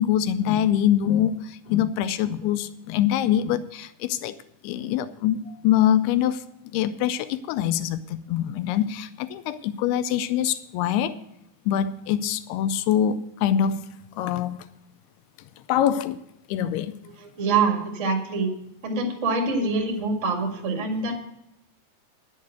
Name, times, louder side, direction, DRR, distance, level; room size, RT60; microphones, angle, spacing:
voice 1, 0.0-4.4 4.6-6.4 6.7-11.2 11.7-13.9 14.2-14.6 15.7-16.2 16.5-16.9, left 10 dB, 85° left, 12 dB, 2.3 m, -24 dB
voice 2, 17.2-18.5 18.8-21.2, right 4 dB, 50° right, 1 dB, 0.8 m, -25 dB
11.0 x 7.3 x 7.9 m, 0.86 s
omnidirectional pair, 5.1 m